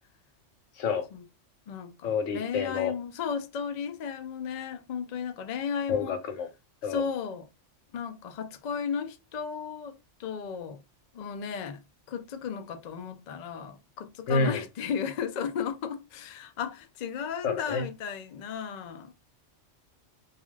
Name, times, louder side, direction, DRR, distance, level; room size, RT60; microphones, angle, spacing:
voice 1, 0.8-1.1 2.0-2.9 5.9-6.5 6.8-7.1 14.3-14.6 17.4-17.8, left 4 dB, 85° left, 1.1 m, -28 dB
voice 2, 1.7-6.2 6.9-7.5 7.9-10.8 11.1-11.8 12.1-19.1, left 7 dB, 65° left, 0.4 m, -34 dB
2.3 x 2.3 x 3.1 m
omnidirectional pair, 1.3 m